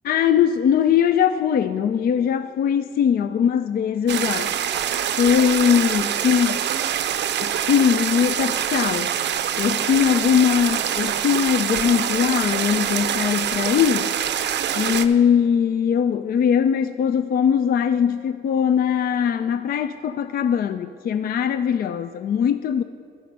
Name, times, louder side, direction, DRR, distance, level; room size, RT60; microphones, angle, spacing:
voice 1, 0.0-4.5 5.2-6.6 7.4-9.1 9.6-14.1 14.8-22.8, left 8 dB, 50° left, 11 dB, 0.4 m, -21 dB
sound 1, 4.1-15.1, right 9 dB, 60° right, 0.5 m, -25 dB
12.5 x 5.9 x 5.3 m, 2.3 s
cardioid pair, 90°, 20 cm